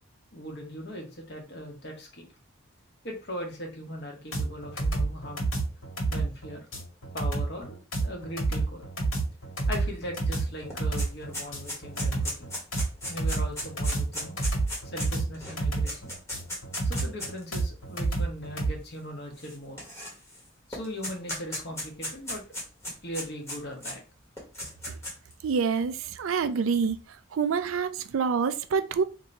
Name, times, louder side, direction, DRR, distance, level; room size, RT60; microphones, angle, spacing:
voice 1, 0.3-2.3 3.0-5.5 6.1-6.7 7.1-8.8 9.7-12.5 13.1-14.4 14.8-16.1 16.8-19.8 20.7-22.4 23.0-24.0, equal, 55° left, 1.2 m, -39 dB
sound 1, 4.3-18.7, right 3 dB, 85° left, 1.8 m, -29 dB
sound 2, 10.1-10.2 10.5-17.4 18.2-18.3 19.4-20.4 20.7-23.9 24.4-25.3, left 1 dB, 15° left, 1.2 m, -36 dB
voice 2, 25.4-27.0 27.3-29.0, right 5 dB, 85° right, 0.4 m, -27 dB
2.9 x 2.6 x 4.3 m
head